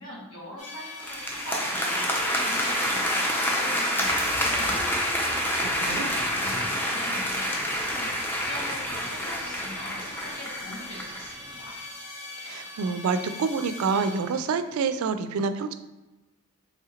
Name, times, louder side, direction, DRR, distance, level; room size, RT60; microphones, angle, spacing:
voice 1, 0.0-2.1 2.4-5.1 5.5-8.1 8.4-11.7, equal, 60° left, -6 dB, 1.5 m, -42 dB
sound 1, 0.6-14.7, left 2 dB, 30° left, 0.8 m, -41 dB
sound 2, 1.0-11.3, equal, 10° left, 0.4 m, -28 dB
voice 2, 12.4-15.8, right 5 dB, 70° right, 9 dB, 0.3 m, -27 dB
3.8 x 3.2 x 2.8 m, 1.1 s
head